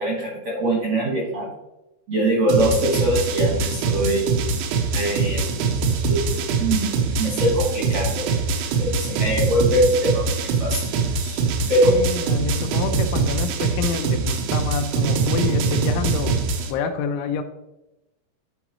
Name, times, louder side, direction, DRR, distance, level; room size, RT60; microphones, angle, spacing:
voice 1, 0.0-1.5 2.1-4.3 4.9-5.5 6.1-6.9 7.2-8.3 8.8-10.8 11.2-11.4 11.7-12.0, right 1 dB, 70° right, -4 dB, 1.6 m, -22 dB
sound 1, 2.5-16.7, right 4 dB, 90° right, 3.5 m, -23 dB
voice 2, 11.9-16.4 16.7-17.4, left 6 dB, 80° left, 7 dB, 2.8 m, -28 dB
13.0 x 4.8 x 3.0 m, 0.96 s
omnidirectional pair, 5.5 m